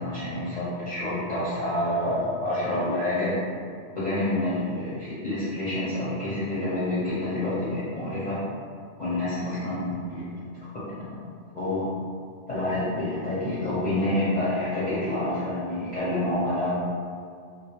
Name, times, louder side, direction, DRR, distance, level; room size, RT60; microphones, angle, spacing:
voice 1, 0.0-3.3 3.9-8.4 9.0-10.3 11.5-11.8 12.5-16.7, left 1 dB, 45° left, -12 dB, 0.7 m, -28 dB
2.2 x 2.0 x 2.8 m, 2.2 s
omnidirectional pair, 1.2 m